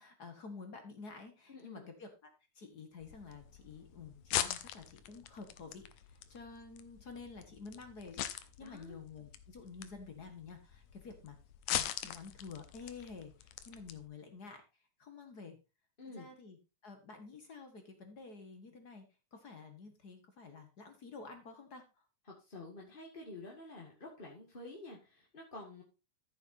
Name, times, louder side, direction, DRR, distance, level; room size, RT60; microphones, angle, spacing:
voice 1, 0.0-2.3 2.5-11.4 11.7-14.6 15.0-15.6 16.0-19.0 19.3-22.0, left 4 dB, 45° left, 6 dB, 1.4 m, -50 dB
voice 2, 1.5-1.9 8.6-9.0 16.0-16.3 22.4-25.8, left 2 dB, 25° left, -1 dB, 1.3 m, -49 dB
sound 1, 3.0-14.1, left 12 dB, 75° left, 2.0 m, -42 dB
14.0 x 7.3 x 2.7 m, 0.29 s
omnidirectional pair, 3.7 m